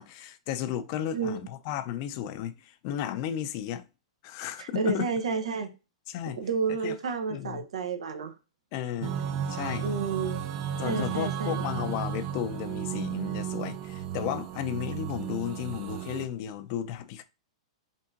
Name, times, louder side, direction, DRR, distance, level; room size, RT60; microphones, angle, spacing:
voice 1, 0.0-3.8 4.2-5.1 6.1-6.4 6.8-6.9 7.3-7.6 8.7-9.2 9.5-9.9 10.8-17.2, left 10 dB, 45° left, 0.6 m, -34 dB
voice 2, 4.6-5.7 6.3-8.3 9.8-10.4 10.8-11.6, right 5 dB, 80° right, 0.9 m, -30 dB
sound 1, 9.0-16.2, right 9 dB, 40° right, 0.5 m, -34 dB
5.2 x 2.7 x 2.6 m
hypercardioid pair, 120°, 3 cm